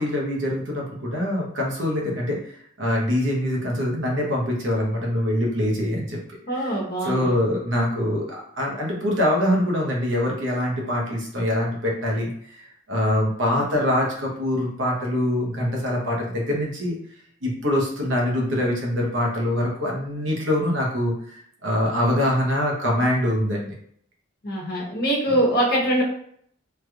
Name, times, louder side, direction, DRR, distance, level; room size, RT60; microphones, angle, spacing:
voice 1, 0.0-2.4 2.8-6.2 6.5-6.8 7.0-12.3 12.9-16.9 17.4-23.7, left 1 dB, 75° right, -2 dB, 1.0 m, -24 dB
voice 2, 6.5-7.4 24.4-26.0, right 1 dB, 55° left, -3 dB, 1.0 m, -23 dB
3.3 x 3.0 x 2.3 m, 0.65 s
head